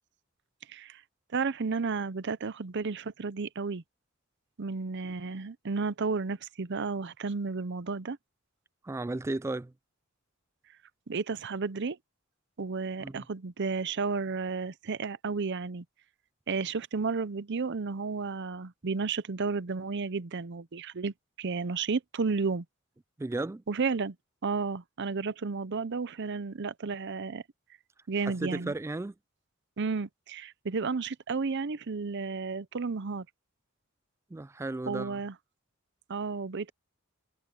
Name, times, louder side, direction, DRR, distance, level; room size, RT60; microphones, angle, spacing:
voice 1, 0.7-1.0 1.3-3.8 4.6-8.2 11.1-12.0 12.6-15.8 16.5-22.6 23.7-24.2 24.4-27.4 28.1-28.7 29.8-33.3 34.9-35.3 36.1-36.7, right 4 dB, 55° right, 0.7 m, -32 dB
voice 2, 8.8-9.7 13.0-13.3 23.2-23.6 28.2-29.1 34.3-35.2, right 2 dB, 15° right, 0.3 m, -34 dB
head